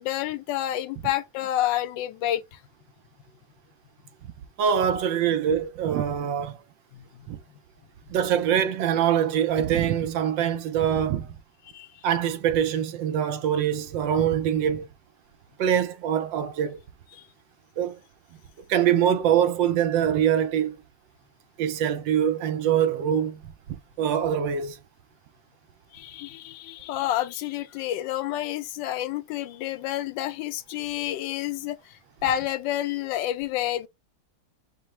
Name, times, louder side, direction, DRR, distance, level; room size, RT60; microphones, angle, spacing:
voice 1, 0.0-2.6 6.9-7.1 11.7-11.9 17.1-17.2 25.9-33.9, left 13 dB, 80° left, 1.3 m, -29 dB
voice 2, 4.6-6.6 7.3-7.4 8.1-11.3 12.0-14.9 15.6-16.8 17.8-18.0 18.7-20.8 21.6-23.4 23.7-24.8, right 9 dB, 80° right, 1.4 m, -24 dB
5.3 x 2.0 x 4.2 m
omnidirectional pair, 2.0 m